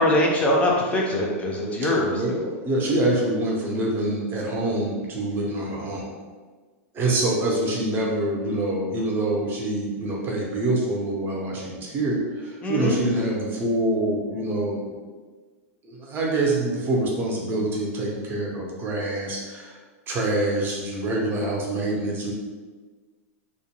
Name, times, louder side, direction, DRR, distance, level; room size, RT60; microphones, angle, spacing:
voice 1, 0.0-2.2 12.6-13.0, left 1 dB, 15° left, -2 dB, 0.5 m, -22 dB
voice 2, 1.8-6.2 6.9-15.0 15.8-19.8 20.1-22.3, right 1 dB, 25° right, -2 dB, 0.7 m, -25 dB
2.4 x 2.2 x 2.8 m, 1.4 s
hypercardioid pair, 130°, 8 cm